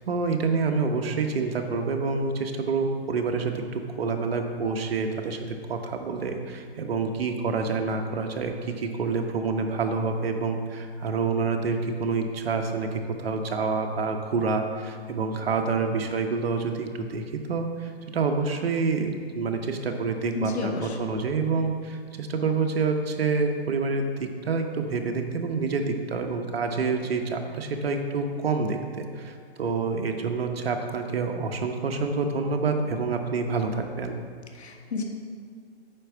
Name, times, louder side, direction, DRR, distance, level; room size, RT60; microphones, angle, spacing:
voice 1, 0.1-34.2, right 4 dB, 65° right, 4 dB, 1.1 m, -27 dB
voice 2, 20.3-21.0 34.5-35.0, left 3 dB, 80° left, 2 dB, 1.5 m, -31 dB
8.9 x 4.2 x 5.9 m, 2.1 s
hypercardioid pair, 160°, 32 cm